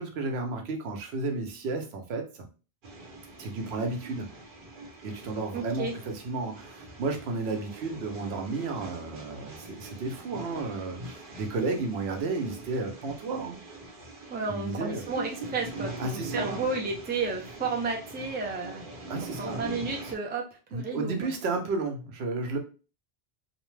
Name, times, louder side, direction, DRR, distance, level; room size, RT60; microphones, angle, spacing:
voice 1, 0.0-2.5 3.4-4.3 5.0-13.6 14.5-15.0 16.0-16.6 19.1-19.6 20.7-22.6, right 3 dB, 85° right, 4 dB, 0.9 m, -32 dB
sound 1, 2.8-20.1, right 2 dB, 55° right, 0.9 m, -43 dB
voice 2, 5.5-5.9 14.3-18.9 19.4-21.3, right 4 dB, 15° right, 1 dB, 0.3 m, -32 dB
2.7 x 2.1 x 3.1 m, 0.34 s
omnidirectional pair, 1.1 m